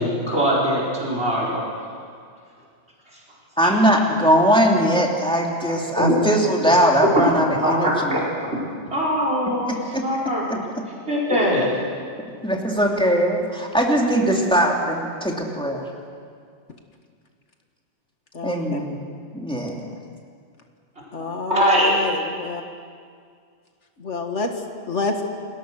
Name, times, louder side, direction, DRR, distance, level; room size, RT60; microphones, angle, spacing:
voice 1, 0.0-2.0 6.0-6.2 7.5-7.7 8.1-8.2 8.9-9.7 10.0-10.4 11.1-11.7 21.5-22.0, equal, 60° right, -4 dB, 4.7 m, -21 dB
voice 2, 3.6-8.2 9.7-10.0 10.5-10.6 12.4-15.9 18.4-19.0 19.3-19.9, equal, 5° left, -1 dB, 2.8 m, -20 dB
voice 3, 18.3-18.8 21.1-22.6 24.0-25.2, left 3 dB, 70° left, 4 dB, 2.1 m, -28 dB
29.0 x 20.0 x 6.4 m, 2.1 s
omnidirectional pair, 1.2 m